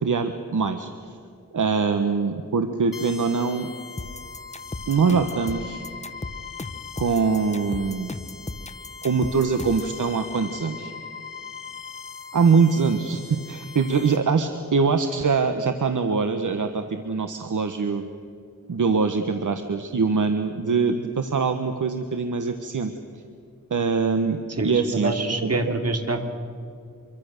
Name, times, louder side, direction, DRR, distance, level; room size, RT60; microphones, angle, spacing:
voice 1, 0.0-0.9 1.5-3.7 4.9-5.8 7.0-8.1 9.0-10.9 12.3-18.0 18.7-22.9 23.7-25.1 25.4-25.6, right 5 dB, 65° right, 7 dB, 1.3 m, -23 dB
sound 1, 2.9-14.2, left 6 dB, 80° left, 3.4 m, -40 dB
sound 2, 4.0-10.0, left 2 dB, 20° left, 1.2 m, -36 dB
voice 2, 24.6-26.2, right 2 dB, 50° right, 5 dB, 2.8 m, -26 dB
26.0 x 23.5 x 6.7 m, 2.4 s
wide cardioid pair, 100°, 33 cm